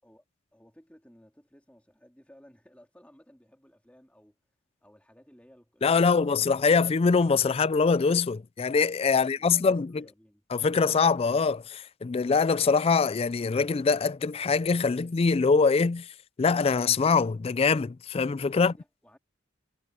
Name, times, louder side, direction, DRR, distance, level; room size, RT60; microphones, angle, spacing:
voice 1, 0.5-4.4 4.8-6.8 9.1-10.4 18.5-19.2, equal, 5° left, 3.7 m, -57 dB
voice 2, 5.8-10.0 10.5-16.1 16.4-18.7, left 5 dB, 30° left, 0.3 m, -23 dB
head